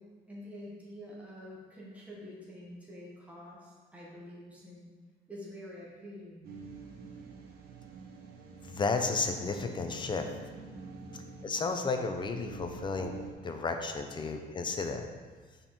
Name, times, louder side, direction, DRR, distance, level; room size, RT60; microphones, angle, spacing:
voice 1, 0.0-4.9 5.3-6.5, left 1 dB, 10° right, -6 dB, 1.4 m, -47 dB
sound 1, 6.4-13.3, right 3 dB, 65° right, 1.0 m, -47 dB
voice 2, 8.6-10.3 11.4-13.1 13.4-15.1, left 4 dB, 30° left, 6 dB, 0.6 m, -32 dB
5.5 x 4.5 x 4.3 m, 1.5 s
cardioid pair, 110°, 17 cm